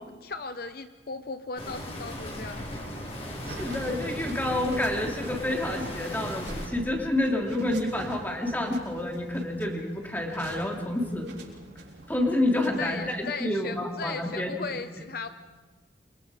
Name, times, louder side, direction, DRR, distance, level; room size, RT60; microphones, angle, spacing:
voice 1, 0.2-2.7 12.5-15.3, left 4 dB, 55° left, 9 dB, 0.8 m, -37 dB
sound 1, 1.6-6.7, equal, 35° left, 4.5 m, -37 dB
voice 2, 3.5-11.3 12.1-14.5, left 1 dB, 10° left, 0 dB, 3.2 m, -28 dB
sound 2, 3.5-13.2, right 1 dB, 80° right, 6.2 m, -44 dB
29.0 x 24.5 x 5.0 m, 1.3 s
head